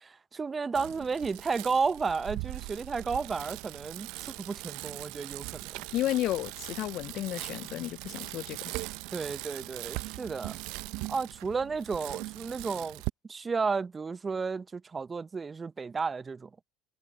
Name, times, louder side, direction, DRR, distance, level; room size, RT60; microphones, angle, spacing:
voice 1, 0.0-5.8 9.1-10.6 11.1-13.0 13.3-16.5, right 4 dB, 25° right, 0.9 m, -33 dB
Bicycle, 0.7-13.1, right 24 dB, 65° right, 0.7 m, -40 dB
voice 2, 5.9-8.8, left 14 dB, 55° left, 0.5 m, -32 dB
hypercardioid pair, 70°, 0 cm